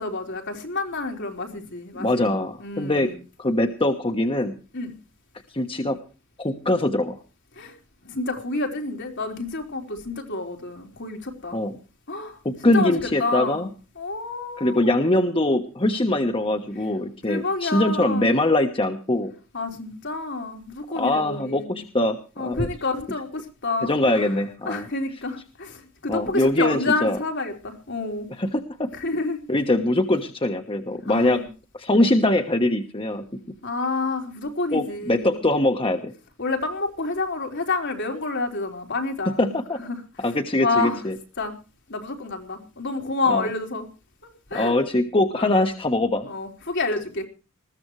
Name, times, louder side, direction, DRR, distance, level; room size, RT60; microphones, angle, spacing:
voice 1, 0.0-2.3 2.6-3.2 4.7-5.0 7.6-7.7 8.0-11.6 12.1-13.7 14.0-15.1 16.7-16.8 17.3-18.3 19.5-21.9 22.4-24.4 24.7-28.3 28.9-29.4 31.1-31.5 33.6-35.4 36.4-39.5 39.8-40.0 40.6-41.0 41.4-41.5 41.9-43.9 44.2-44.8 45.3-45.5 46.2-47.2, left 3 dB, 60° left, 4.0 m, -29 dB
voice 2, 2.0-3.1 3.4-4.5 5.5-6.0 6.4-7.2 11.5-11.7 12.4-13.7 14.6-19.3 20.9-22.7 23.8-24.8 26.1-27.2 28.4-28.9 29.5-31.4 31.7-33.4 34.7-36.1 39.4-39.8 40.2-41.2 43.3-43.5 44.5-46.3, left 1 dB, 25° left, 1.2 m, -22 dB
20.5 x 15.5 x 3.2 m
head